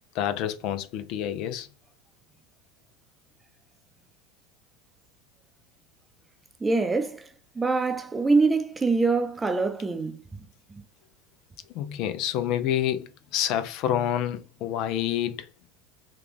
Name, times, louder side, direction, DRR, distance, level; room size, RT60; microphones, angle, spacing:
voice 1, 0.2-1.7 11.7-15.4, left 11 dB, 60° left, 0.4 m, -28 dB
voice 2, 6.6-10.4 10.7-10.8, right 3 dB, 15° right, 0.6 m, -25 dB
3.4 x 2.3 x 3.4 m
hypercardioid pair, 85°, 0 cm